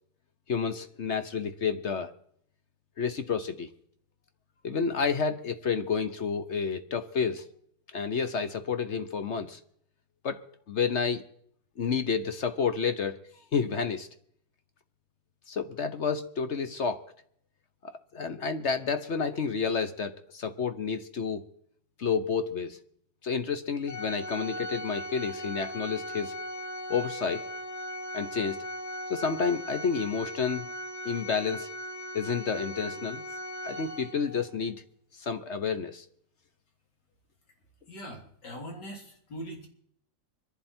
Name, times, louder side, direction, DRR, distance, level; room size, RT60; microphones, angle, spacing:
voice 1, 0.5-2.1 3.0-3.7 4.6-7.4 7.9-9.6 10.2-10.4 10.7-11.2 11.8-13.2 13.5-14.1 15.5-17.0 17.8-21.4 22.0-22.8 23.2-26.3 26.9-27.4 28.1-28.6 29.1-30.7 31.0-31.7 32.1-33.2 33.6-34.8 35.1-36.0, left 5 dB, 50° left, 10 dB, 1.0 m, -30 dB
Organ, 23.9-34.4, equal, 70° left, 7.9 m, -38 dB
voice 2, 37.9-39.7, equal, 85° left, 1 dB, 4.1 m, -41 dB
25.0 x 11.0 x 4.4 m, 0.66 s
omnidirectional pair, 1.8 m